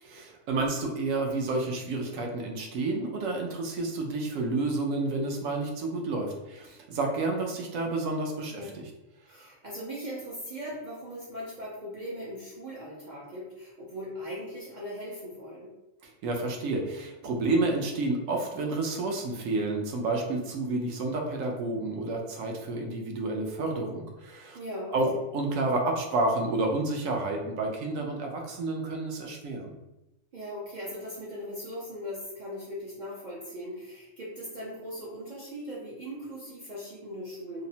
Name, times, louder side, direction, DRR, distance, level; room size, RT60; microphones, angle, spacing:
voice 1, 0.0-8.9 9.3-9.5 16.0-24.6 24.9-29.7, right 2 dB, 80° right, 1 dB, 1.0 m, -30 dB
voice 2, 8.5-8.8 9.3-15.7 24.5-25.2 30.3-37.7, equal, 55° right, -6 dB, 0.5 m, -39 dB
2.8 x 2.0 x 2.7 m, 0.95 s
omnidirectional pair, 1.4 m